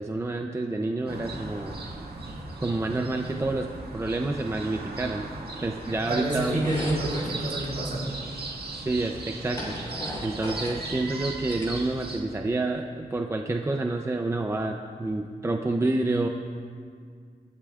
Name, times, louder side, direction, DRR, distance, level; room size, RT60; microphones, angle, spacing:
voice 1, 0.0-1.8 2.6-5.3 5.6-6.7 8.7-9.7 10.2-16.3, right 2 dB, 15° right, 3 dB, 0.5 m, -28 dB
sound 1, 1.1-12.2, right 2 dB, 90° right, 1.7 m, -37 dB
voice 2, 6.1-8.1, right 1 dB, 60° right, -4 dB, 3.7 m, -28 dB
sound 2, 6.5-7.3 8.5-8.6 9.0-10.9 11.2-12.3, left 1 dB, 25° left, 3.5 m, -37 dB
25.0 x 12.5 x 2.4 m, 2.1 s
wide cardioid pair, 175°, 16 cm